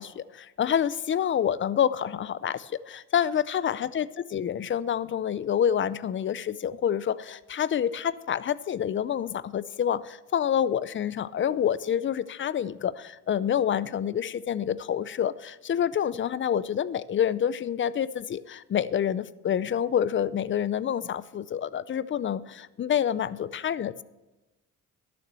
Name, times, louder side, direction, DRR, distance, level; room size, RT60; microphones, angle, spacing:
voice 1, 0.0-24.0, left 9 dB, 40° left, 18 dB, 0.5 m, -27 dB
12.0 x 7.0 x 7.6 m, 1.1 s
cardioid pair, 90°, 30 cm